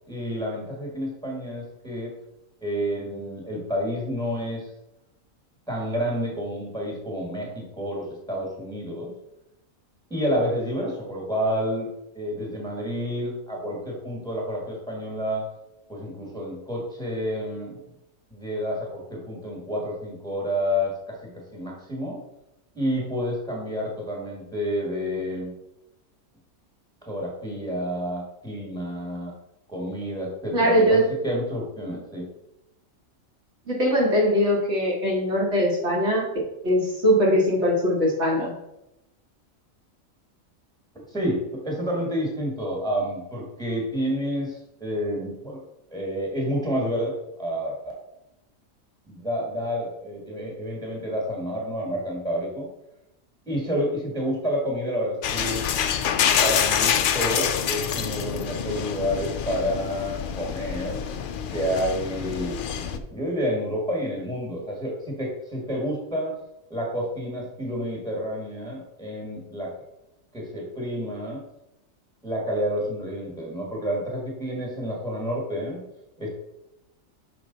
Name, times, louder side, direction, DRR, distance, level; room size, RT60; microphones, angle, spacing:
voice 1, 0.1-2.1 2.6-4.7 5.7-9.1 10.1-11.9 12.1-15.4 15.9-17.8 18.3-22.2 22.7-25.5 27.0-29.3 29.7-32.2 41.1-45.6 45.9-47.8 49.1-52.7 53.5-55.6 56.4-61.0 61.5-66.3 66.7-69.7 70.3-71.4 72.2-75.8 76.2-76.3, equal, 5° left, -2 dB, 1.5 m, -29 dB
voice 2, 30.5-31.1 33.7-36.3 36.6-38.5, equal, 55° right, -3 dB, 1.7 m, -21 dB
sound 1, 55.2-63.0, left 8 dB, 85° left, 0.4 m, -26 dB
6.0 x 4.9 x 3.9 m, 0.89 s
omnidirectional pair, 1.4 m